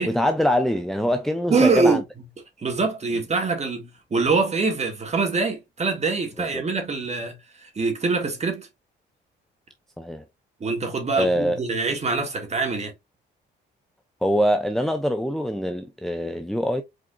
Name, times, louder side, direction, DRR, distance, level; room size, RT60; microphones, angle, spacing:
voice 1, 0.0-2.0 6.5-6.6 10.0-10.2 11.1-11.6 14.2-16.8, equal, ahead, 0.6 m, -23 dB
voice 2, 1.5-2.0 2.6-8.7 10.6-12.9, right 4 dB, 35° right, 2.0 m, -24 dB
5.0 x 4.2 x 2.4 m
cardioid pair, 90°, 20 cm